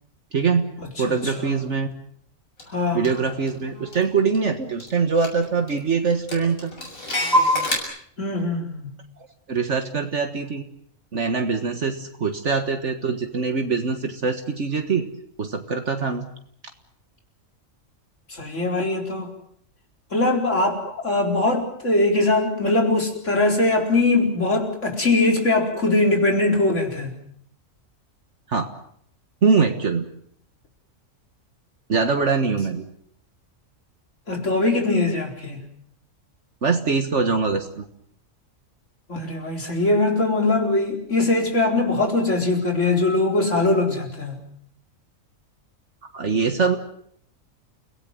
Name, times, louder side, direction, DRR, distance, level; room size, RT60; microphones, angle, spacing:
voice 1, 0.3-0.7 1.0-1.9 2.9-6.7 9.5-10.6 11.1-15.0 15.4-16.3 28.5-28.7 29.4-30.1 31.9-32.8 36.6-37.9 46.1-46.8, right 5 dB, 60° right, 6 dB, 1.8 m, -23 dB
voice 2, 1.1-1.6 2.7-3.1 8.2-8.9 18.3-19.3 20.1-27.1 34.3-35.6 39.1-44.4, left 2 dB, 65° left, 1 dB, 4.7 m, -21 dB
Clock, 2.6-2.7 3.0-4.5 4.8-4.9 5.2-5.8 6.1-7.8, equal, 90° left, 7.6 m, -25 dB
30.0 x 18.0 x 7.7 m, 0.68 s
omnidirectional pair, 1.4 m